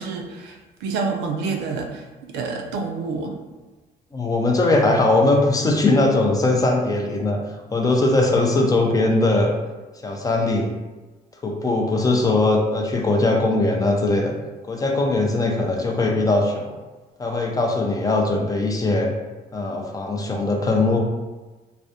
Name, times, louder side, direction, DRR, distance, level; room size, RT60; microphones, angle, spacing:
voice 1, 0.0-2.0 2.3-3.4, right 4 dB, 90° right, 3 dB, 0.4 m, -28 dB
voice 2, 4.1-7.4 7.7-9.5 10.0-10.7 11.4-14.3 14.7-16.7 17.2-19.1 19.5-21.0, left 2 dB, 20° left, 1 dB, 0.4 m, -20 dB
2.3 x 2.0 x 2.7 m, 1.2 s
cardioid pair, 110°, 17 cm